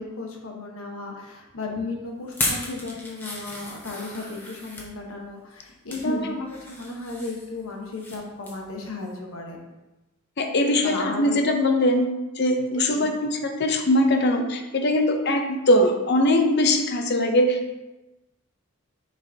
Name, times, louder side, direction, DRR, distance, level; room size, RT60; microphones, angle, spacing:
voice 1, 0.0-9.6 10.8-11.4 12.9-13.1, left 3 dB, 85° left, 0 dB, 1.2 m, -34 dB
banana opening, 2.3-4.9 5.5-6.1 6.5-8.2 8.4-8.7 9.1-9.2, left 1 dB, 10° left, 1.1 m, -34 dB
voice 2, 10.4-12.1 12.4-17.7, left 1 dB, 55° left, 4 dB, 0.6 m, -21 dB
6.7 x 5.2 x 2.8 m, 1.0 s
head